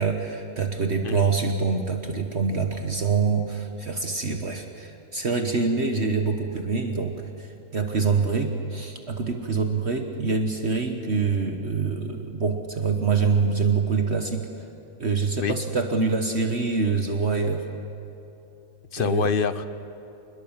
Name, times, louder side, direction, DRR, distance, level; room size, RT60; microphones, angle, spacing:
voice 1, 0.0-7.5 7.7-14.5 15.0-17.6 19.0-19.3, right 4 dB, 50° right, 5 dB, 1.4 m, -25 dB
voice 2, 18.9-19.7, left 7 dB, 55° left, 13 dB, 0.6 m, -26 dB
27.0 x 21.5 x 7.3 m, 2.8 s
omnidirectional pair, 1.6 m